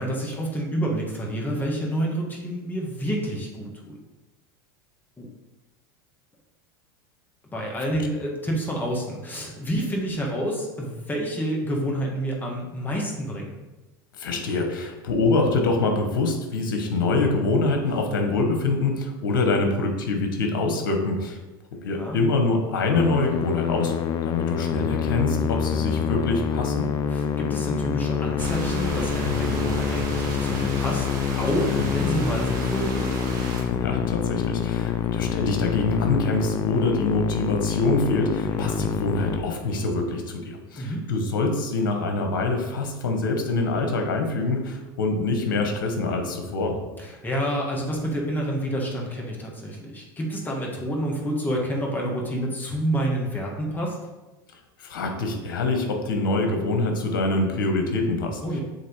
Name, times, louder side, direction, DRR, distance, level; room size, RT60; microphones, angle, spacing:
voice 1, 0.0-4.0 5.2-5.3 7.5-13.5 21.8-22.2 27.1-31.1 31.4-33.1 38.5-38.8 40.8-41.0 47.0-54.0 58.4-58.6, equal, 15° left, -1 dB, 1.6 m, -28 dB
voice 2, 14.2-21.4 21.8-23.9 24.2-26.9 31.8-31.9 33.7-46.8 54.8-58.4, left 3 dB, 80° left, 4 dB, 1.3 m, -25 dB
Musical instrument, 22.9-40.1, left 7 dB, 35° left, 0.4 m, -26 dB
sound 1, 28.4-33.6, right 2 dB, 70° right, 1.7 m, -34 dB
7.5 x 3.4 x 4.6 m, 1.1 s
hypercardioid pair, 100°, 11 cm